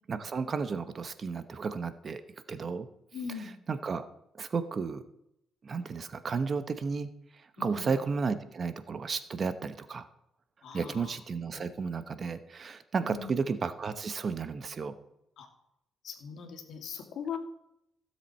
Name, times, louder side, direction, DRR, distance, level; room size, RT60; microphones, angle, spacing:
voice 1, 0.1-2.2 2.5-2.9 3.7-4.1 4.4-5.0 5.6-7.1 7.6-10.1 10.7-14.9, right 5 dB, 45° right, 11 dB, 0.9 m, -33 dB
voice 2, 3.1-3.5 7.6-7.9 10.6-11.2 11.5-11.8 13.0-13.4 15.4-15.5 16.0-17.4, left 6 dB, 70° left, 3 dB, 2.4 m, -40 dB
16.0 x 7.5 x 4.3 m, 0.80 s
cardioid pair, 90°, 0 cm